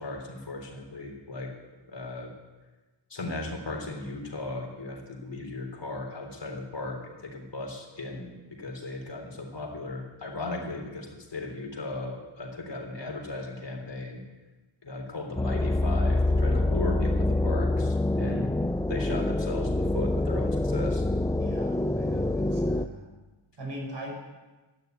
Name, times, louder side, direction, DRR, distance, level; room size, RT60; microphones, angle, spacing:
voice 1, 0.0-1.5 1.9-2.3 3.1-8.3 8.6-14.2 14.8-18.5 18.9-21.1, left 2 dB, 60° left, 1 dB, 3.7 m, -36 dB
sound 1, 15.4-22.9, left 2 dB, 5° left, 0.5 m, -26 dB
voice 2, 18.1-18.5 21.4-23.1 23.6-24.2, equal, 60° right, 0 dB, 5.9 m, -39 dB
12.5 x 10.5 x 9.4 m, 1.2 s
wide cardioid pair, 75°, 48 cm